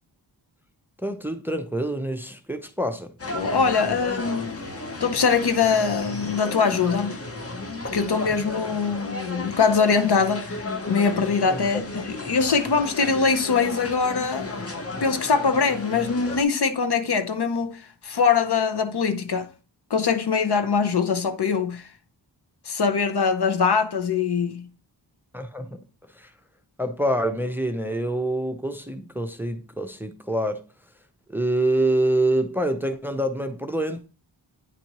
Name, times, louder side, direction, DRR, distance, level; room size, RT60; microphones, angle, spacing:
voice 1, 1.0-3.2 11.5-11.9 25.3-25.8 26.1-26.3 26.8-30.6 31.3-34.0, right 1 dB, 5° right, 0.6 m, -26 dB
sound 1, 3.2-16.4, left 2 dB, 30° left, 0.9 m, -34 dB
voice 2, 3.3-7.2 7.9-14.7 15.0-19.5 19.9-21.9 22.6-24.7, left 5 dB, 60° left, 0.8 m, -23 dB
9.3 x 4.2 x 3.0 m
wide cardioid pair, 65°, 44 cm